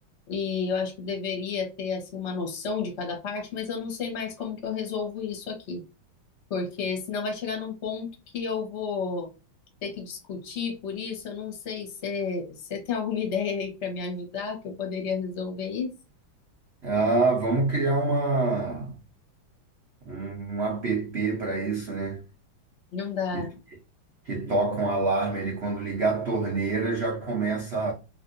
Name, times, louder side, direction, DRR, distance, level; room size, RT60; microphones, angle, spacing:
voice 1, 0.3-5.8 6.5-8.1 8.3-9.3 9.8-15.9 22.9-23.5, left 5 dB, 45° left, 1.0 m, -31 dB
voice 2, 16.8-18.9 20.1-22.2 23.3-23.5 24.3-27.9, right 3 dB, 75° right, 0.6 m, -26 dB
3.4 x 2.6 x 2.6 m
omnidirectional pair, 2.3 m